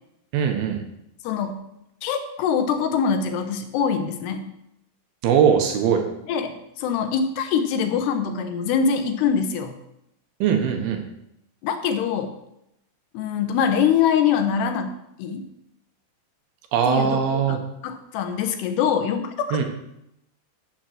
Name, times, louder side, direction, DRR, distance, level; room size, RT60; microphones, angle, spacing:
voice 1, 0.3-0.8 5.2-6.0 10.4-11.0 16.7-17.6 19.5-19.6, right 7 dB, 70° right, 4 dB, 2.8 m, -20 dB
voice 2, 1.2-1.7 2.0-4.4 6.3-9.8 11.6-12.4 13.1-15.5 16.9-19.6, left 7 dB, 80° left, 7 dB, 3.0 m, -24 dB
7.9 x 7.4 x 7.5 m, 0.81 s
omnidirectional pair, 4.8 m